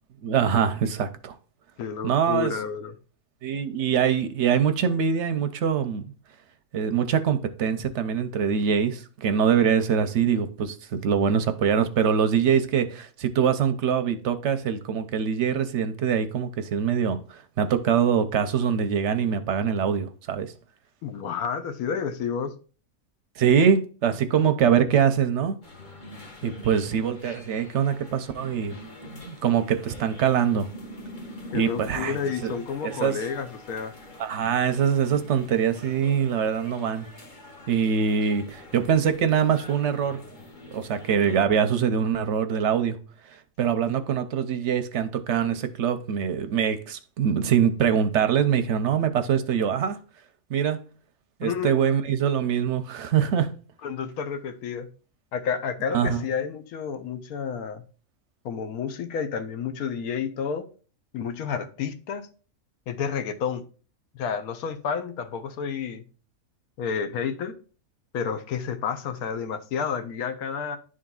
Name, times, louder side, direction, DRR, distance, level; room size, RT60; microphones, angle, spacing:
voice 1, 0.2-1.4 2.0-2.6 3.4-6.0 6.7-20.5 23.4-25.6 26.4-28.8 29.2-30.7 31.5-32.5 32.8-33.2 34.2-37.1 37.7-40.2 40.7-43.0 43.3-50.0 50.5-50.8 51.4-53.5 55.9-56.2, right 7 dB, 65° right, 0.8 m, -23 dB
voice 2, 1.8-2.9 21.0-22.5 27.2-27.4 31.5-33.9 51.4-51.7 53.8-54.9 55.3-57.9 58.4-60.7 61.1-62.3 62.9-63.6 64.1-66.0 66.8-67.6 68.1-70.8, left 6 dB, 80° left, 1.2 m, -30 dB
sound 1, 25.6-41.4, left 1 dB, 40° left, 0.9 m, -45 dB
11.0 x 3.8 x 2.3 m
omnidirectional pair, 1.5 m